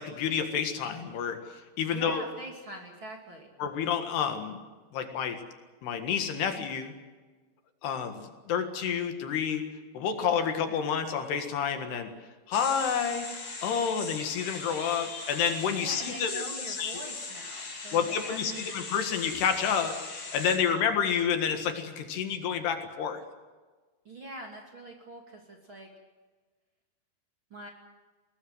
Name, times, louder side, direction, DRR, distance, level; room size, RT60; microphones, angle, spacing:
voice 1, 0.0-2.2 3.6-4.6 4.9-5.4 5.8-6.9 7.8-9.7 9.9-12.1 12.5-17.0 17.9-23.2, left 7 dB, 70° left, 6 dB, 3.7 m, -29 dB
voice 2, 1.9-3.5 15.8-18.6 24.0-25.9 27.5-27.7, right 1 dB, 35° right, 1 dB, 2.7 m, -43 dB
sound 1, 12.5-20.6, left 3 dB, 45° left, 5.1 m, -39 dB
22.5 x 19.0 x 8.0 m, 1.3 s
omnidirectional pair, 5.1 m